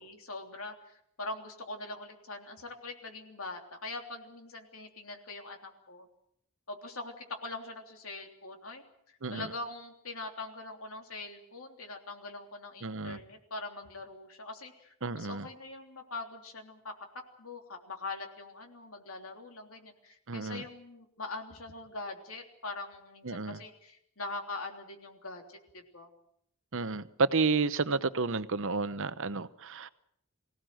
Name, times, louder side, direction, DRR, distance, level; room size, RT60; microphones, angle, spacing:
voice 1, 0.0-6.1 6.7-8.8 9.3-26.1, left 2 dB, 70° left, 3.3 m, -43 dB
voice 2, 12.8-13.2 15.0-15.5 20.3-20.6 23.2-23.6 26.7-29.9, right 4 dB, 60° right, 0.9 m, -31 dB
24.5 x 17.5 x 7.8 m
head